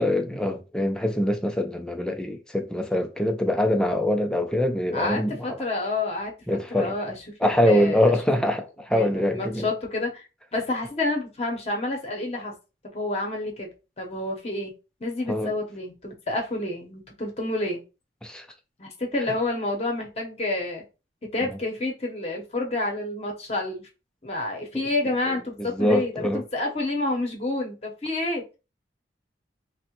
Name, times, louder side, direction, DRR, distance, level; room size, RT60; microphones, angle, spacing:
voice 1, 0.0-5.6 6.5-7.0 7.4-9.7 15.3-15.5 18.2-18.5 21.4-21.6 25.6-26.4, left 1 dB, 5° left, 0.4 m, -24 dB
voice 2, 4.9-6.3 6.7-8.1 8.9-10.3 10.5-12.5 12.9-13.7 14.0-14.7 15.0-17.8 18.8-20.8 21.3-23.9 24.2-28.4, left 2 dB, 35° left, 0.8 m, -29 dB
3.5 x 2.1 x 2.9 m
head